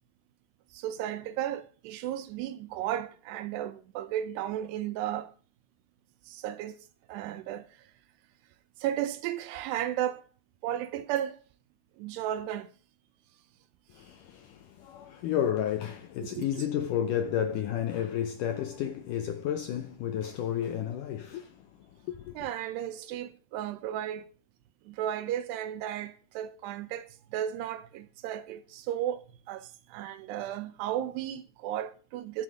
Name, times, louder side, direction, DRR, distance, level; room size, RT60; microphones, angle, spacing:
voice 1, 0.7-5.3 6.3-7.8 8.8-10.2 10.6-11.4 12.0-12.7 16.2-16.5 22.4-24.3 24.9-32.4, right 11 dB, 85° right, 3.0 m, -34 dB
voice 2, 13.9-22.5, left 10 dB, 85° left, 1.8 m, -32 dB
13.5 x 6.6 x 5.1 m
omnidirectional pair, 4.7 m